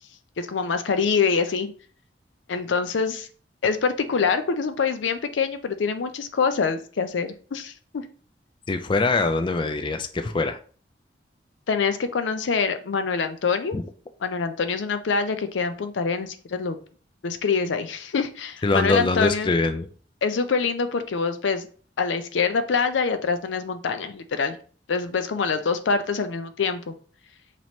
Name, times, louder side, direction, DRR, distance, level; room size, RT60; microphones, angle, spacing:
voice 1, 0.4-1.7 2.5-3.3 3.6-7.7 11.7-13.8 14.2-16.8 17.2-19.5 20.2-21.7 22.0-24.6 24.9-26.9, left 5 dB, 90° left, 0.5 m, -25 dB
voice 2, 8.7-10.6 13.7-13.8 18.6-19.9, left 3 dB, 25° left, 0.3 m, -23 dB
3.1 x 3.0 x 4.2 m
head